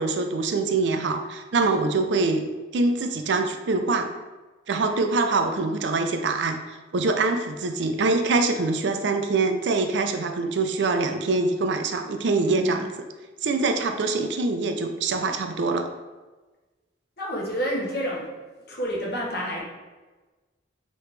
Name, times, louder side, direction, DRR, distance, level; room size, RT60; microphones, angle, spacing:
voice 1, 0.0-2.5 2.7-4.1 4.7-12.9 13.4-15.9, right 3 dB, 70° right, 6 dB, 0.4 m, -24 dB
voice 2, 12.3-12.8 17.2-18.3 18.7-19.6, equal, 55° left, -3 dB, 1.1 m, -29 dB
4.9 x 3.0 x 3.2 m, 1.2 s
head